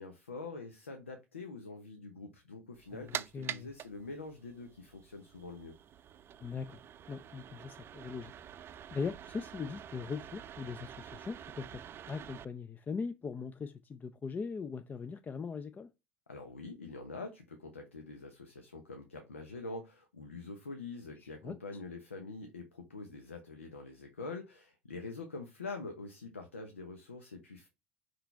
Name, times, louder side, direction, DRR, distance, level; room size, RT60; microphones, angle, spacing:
voice 1, 0.0-5.7 16.3-27.7, left 3 dB, 85° left, 0.9 m, -45 dB
sound 1, 2.7-12.4, right 9 dB, 35° right, 0.5 m, -47 dB
voice 2, 2.9-3.7 6.4-6.8 7.1-8.3 8.9-15.9 21.2-21.6, left 5 dB, 25° left, 0.5 m, -40 dB
5.8 x 5.2 x 3.4 m
figure-of-eight pair, 70°, 7 cm